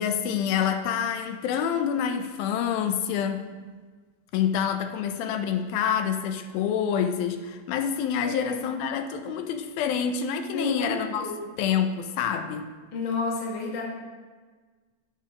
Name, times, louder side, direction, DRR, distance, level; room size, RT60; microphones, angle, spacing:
voice 1, 0.0-3.5 4.3-11.3 11.6-12.7, left 8 dB, 85° left, 7 dB, 2.4 m, -27 dB
voice 2, 8.2-8.6 10.5-11.5 12.9-13.8, left 3 dB, 45° left, -3 dB, 1.7 m, -31 dB
17.0 x 5.7 x 2.9 m, 1.4 s
omnidirectional pair, 4.1 m